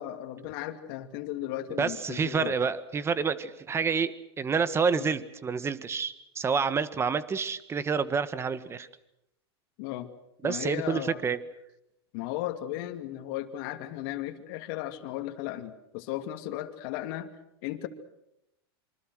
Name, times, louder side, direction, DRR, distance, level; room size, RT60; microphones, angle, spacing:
voice 1, 0.0-2.5 4.9-5.1 9.8-10.1 10.4-11.2 12.1-17.3 17.6-17.9, left 13 dB, 55° left, 6 dB, 2.6 m, -35 dB
voice 2, 1.8-8.9 10.4-11.4, right 5 dB, 20° right, 14 dB, 1.6 m, -28 dB
26.5 x 25.0 x 6.4 m, 0.83 s
hypercardioid pair, 120°, 14 cm